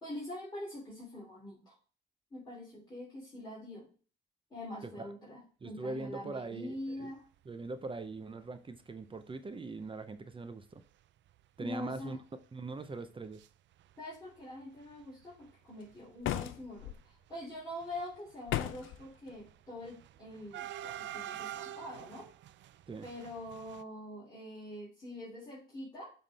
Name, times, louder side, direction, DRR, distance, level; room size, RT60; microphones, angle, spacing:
voice 1, 0.0-1.7 2.3-3.9 4.5-7.2 11.6-12.2 14.0-22.3 23.0-26.1, left 1 dB, 20° left, 3.1 m, -44 dB
voice 2, 5.6-7.1 7.5-10.8 11.6-12.2 12.5-13.4 22.9-23.1, right 3 dB, 25° right, 0.6 m, -41 dB
sound 1, 7.8-8.1 8.5-8.6 8.8-9.0 9.8-9.9 10.3-10.5 10.8-10.9 11.3-13.5 13.7-14.4 14.7-23.8, right 12 dB, 65° right, 0.4 m, -48 dB
sound 2, 16.2-17.0 18.5-19.0, left 13 dB, 80° left, 0.5 m, -35 dB
7.3 x 3.6 x 4.0 m
cardioid pair, 90°, 20 cm